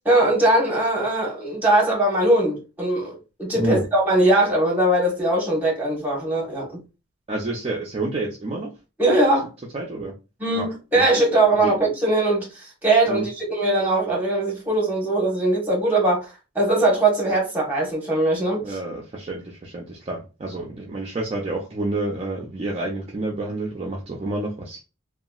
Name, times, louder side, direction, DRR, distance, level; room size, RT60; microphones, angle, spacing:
voice 1, 0.0-6.8 9.0-9.5 10.4-18.6, right 2 dB, 10° right, 1.1 m, -21 dB
voice 2, 3.6-3.9 7.3-8.7 9.7-10.1 10.5-10.7 11.0-11.1 11.4-11.8 13.1-13.3 18.6-24.8, right 2 dB, 30° right, 0.4 m, -29 dB
2.9 x 2.4 x 2.3 m
head